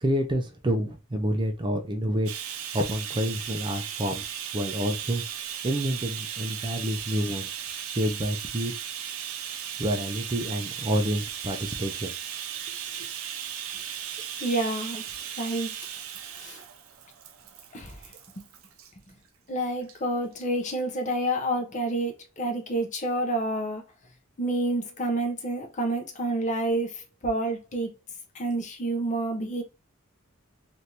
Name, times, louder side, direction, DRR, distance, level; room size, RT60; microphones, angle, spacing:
voice 1, 0.0-2.3 2.7-5.2 5.6-8.7 9.8-12.1 12.7-12.8, equal, 25° right, 0.4 m, -28 dB
Bathtub (filling or washing), 2.3-18.9 19.8-20.0 20.3-20.4, right 9 dB, 90° right, 0.5 m, -36 dB
voice 2, 14.4-15.0 15.4-15.7 16.4-16.6 17.7-18.0 18.4-18.5 19.5-23.8 24.4-27.9 28.3-29.6, right 1 dB, 35° left, 0.7 m, -28 dB
3.3 x 2.5 x 2.8 m
head